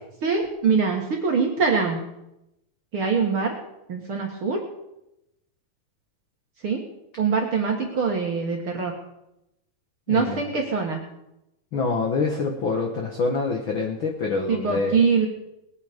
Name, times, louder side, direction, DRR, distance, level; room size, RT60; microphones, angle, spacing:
voice 1, 0.2-2.0 2.9-3.5 3.9-4.6 6.6-6.8 7.2-8.9 10.1-11.0 14.5-15.3, right 5 dB, 50° right, 1 dB, 1.7 m, -23 dB
voice 2, 10.1-10.4 11.7-15.0, left 4 dB, 75° left, 2 dB, 1.1 m, -26 dB
20.0 x 9.6 x 5.2 m, 0.87 s
omnidirectional pair, 4.3 m